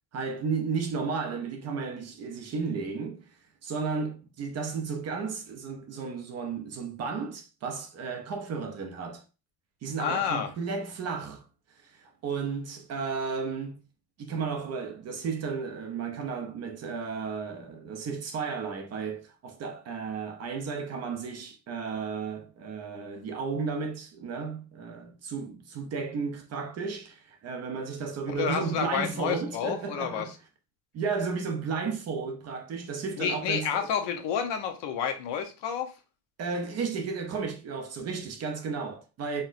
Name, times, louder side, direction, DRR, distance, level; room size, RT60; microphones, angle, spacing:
voice 1, 0.1-9.2 9.8-11.4 11.8-13.8 14.2-30.3 30.9-33.9 36.4-39.4, right 5 dB, 35° right, 0.4 m, -33 dB
voice 2, 10.0-10.5 28.3-30.3 33.2-35.9, left 7 dB, 65° left, 0.8 m, -30 dB
4.3 x 2.0 x 2.5 m
cardioid pair, 160°, 45 cm